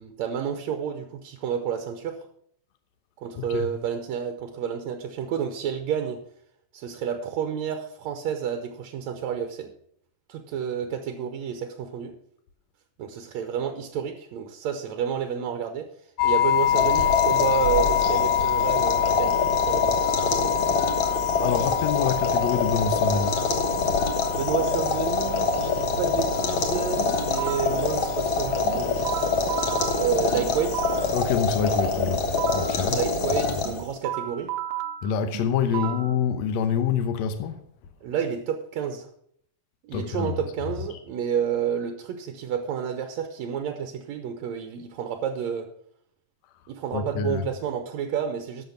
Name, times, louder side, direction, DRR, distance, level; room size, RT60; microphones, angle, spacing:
voice 1, 0.0-2.2 3.2-6.2 6.7-9.7 10.3-12.2 13.0-15.9 16.2-20.6 24.3-29.3 30.0-30.8 32.9-34.5 35.7-35.9 38.0-39.1 39.8-45.7 46.7-48.6, right 8 dB, 70° right, 1.8 m, -30 dB
voice 2, 3.4-3.7 21.4-23.4 23.9-24.0 31.1-33.0 33.5-33.6 35.0-37.6 39.9-40.4 40.9-41.0 46.9-47.4, left 7 dB, 75° left, 1.7 m, -26 dB
sound 1, 16.2-31.1, left 11 dB, 90° left, 1.6 m, -27 dB
sound 2, 16.6-34.0, left 3 dB, 50° left, 1.6 m, -26 dB
sound 3, 27.0-27.8 28.7-31.2 32.0-32.8 33.7-36.2, right 12 dB, 85° right, 2.3 m, -34 dB
12.0 x 6.8 x 5.8 m
omnidirectional pair, 4.0 m